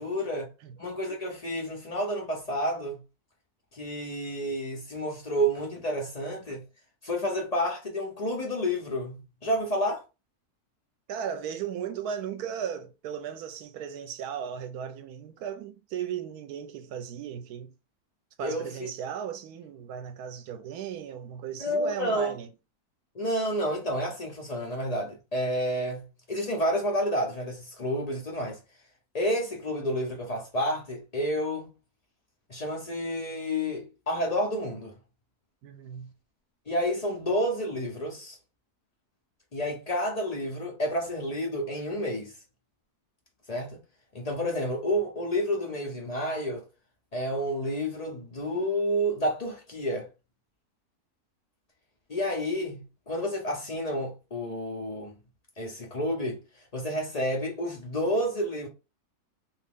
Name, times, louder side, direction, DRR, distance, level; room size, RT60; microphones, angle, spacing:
voice 1, 0.0-0.5 0.8-3.0 3.7-6.6 7.0-10.0 18.4-18.7 21.6-22.3 23.1-28.6 29.1-31.7 32.5-34.9 36.7-38.4 39.5-42.3 43.5-43.8 44.1-46.6 47.1-50.1 52.1-55.1 55.6-56.4 56.7-58.7, equal, 55° left, 0.4 m, -30 dB
voice 2, 11.1-17.7 18.4-22.5 35.6-36.1, right 8 dB, 80° right, 1.1 m, -36 dB
3.0 x 2.7 x 3.5 m
omnidirectional pair, 1.6 m